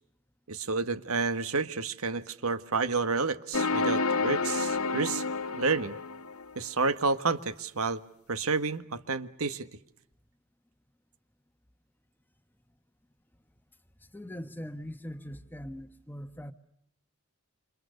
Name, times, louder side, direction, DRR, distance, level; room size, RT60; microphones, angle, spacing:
voice 1, 0.5-5.2 5.5-6.0 6.5-8.0 8.3-9.7, right 4 dB, 75° right, 1.6 m, -30 dB
sound 1, 3.5-6.5, left 3 dB, 80° left, 1.6 m, -29 dB
voice 2, 14.1-16.5, equal, 10° left, 1.2 m, -41 dB
29.0 x 27.0 x 6.6 m
head